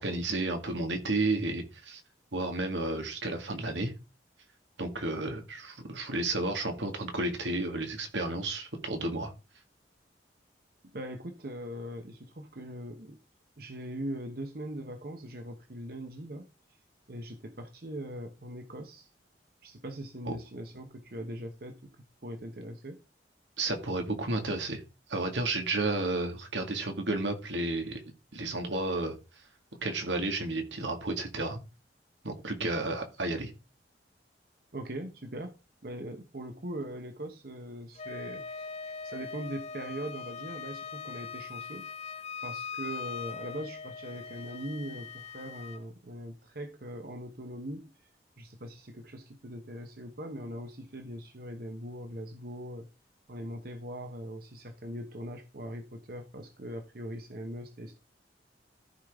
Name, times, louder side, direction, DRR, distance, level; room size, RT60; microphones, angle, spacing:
voice 1, 0.0-2.0 2.3-3.9 4.8-9.3 20.3-20.4 23.6-24.8 25.1-28.0 28.3-29.1 29.8-31.6 32.2-33.5, right 2 dB, 90° right, 2.0 m, -32 dB
voice 2, 10.8-13.2 13.6-16.5 17.1-19.1 19.6-21.9 22.2-23.0 34.7-35.6 35.8-41.9 42.4-47.9 48.4-52.9 53.3-58.0, right 1 dB, 55° right, 1.0 m, -41 dB
Wind instrument woodwind instrument, 37.9-45.8, left 5 dB, 35° left, 0.5 m, -41 dB
14.0 x 5.1 x 3.6 m
head